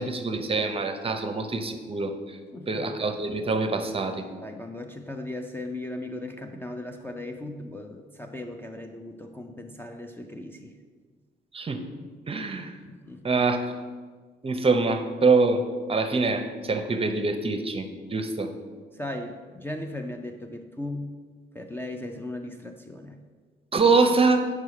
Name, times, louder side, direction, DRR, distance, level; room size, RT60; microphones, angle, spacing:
voice 1, 0.0-2.1 2.7-4.2 11.5-11.8 12.3-12.7 13.2-13.6 14.4-18.5 23.7-24.5, right 3 dB, 30° right, 7 dB, 0.6 m, -24 dB
voice 2, 2.5-2.8 4.4-10.7 12.9-13.2 19.0-21.1 21.5-23.1, left 1 dB, 10° left, 4 dB, 0.4 m, -37 dB
4.8 x 4.8 x 5.8 m, 1.5 s
cardioid pair, 90°, 20 cm